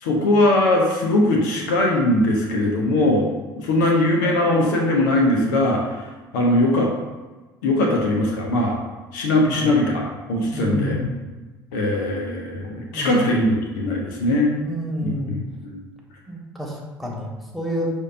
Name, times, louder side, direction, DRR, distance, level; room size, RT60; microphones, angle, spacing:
voice 1, 0.0-3.3 3.6-6.0 6.3-6.9 7.6-8.8 9.1-11.0 11.7-14.5 15.0-15.8, left 1 dB, 85° left, 0 dB, 0.7 m, -20 dB
voice 2, 9.5-9.8 10.5-11.2 12.9-13.4 14.5-15.3 16.3-17.9, left 1 dB, ahead, -3 dB, 1.5 m, -29 dB
6.3 x 2.6 x 2.6 m, 1.2 s
hypercardioid pair, 60°, 10 cm